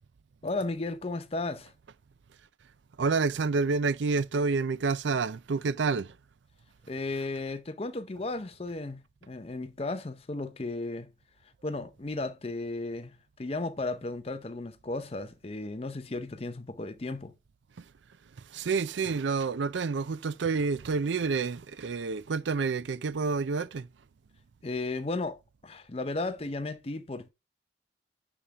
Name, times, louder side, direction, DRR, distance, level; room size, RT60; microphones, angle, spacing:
voice 1, 0.4-1.7 6.9-11.1 11.6-17.3 24.6-27.3, left 2 dB, 30° left, 0.6 m, -35 dB
voice 2, 3.0-6.1 17.8-17.9 18.5-23.9, right 4 dB, 70° right, 0.4 m, -28 dB
9.9 x 3.5 x 3.5 m
head